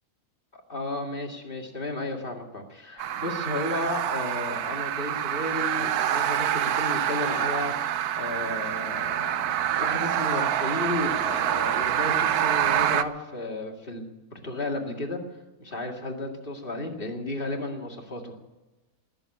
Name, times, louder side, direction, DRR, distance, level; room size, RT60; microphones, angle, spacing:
voice 1, 0.5-9.5 9.8-15.2 15.6-18.2, left 2 dB, 35° left, 1 dB, 2.4 m, -33 dB
sound 1, 3.0-13.0, right 10 dB, 90° right, 1.2 m, -26 dB
20.0 x 7.3 x 9.9 m, 1.1 s
omnidirectional pair, 1.6 m